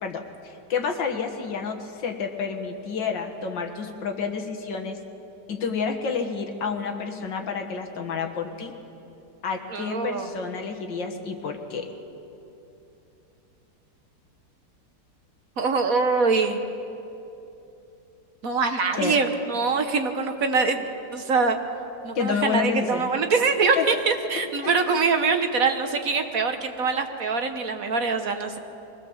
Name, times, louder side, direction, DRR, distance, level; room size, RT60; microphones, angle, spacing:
voice 1, 0.0-5.0 5.5-8.7 9.4-11.9 19.0-19.2 22.1-23.1 23.8-24.0 24.6-24.7, left 5 dB, 85° left, 4 dB, 2.2 m, -29 dB
voice 2, 9.7-10.3 15.6-16.6 18.4-21.6 22.0-28.6, right 4 dB, 55° right, 6 dB, 1.5 m, -24 dB
23.5 x 18.0 x 7.2 m, 2.9 s
omnidirectional pair, 1.9 m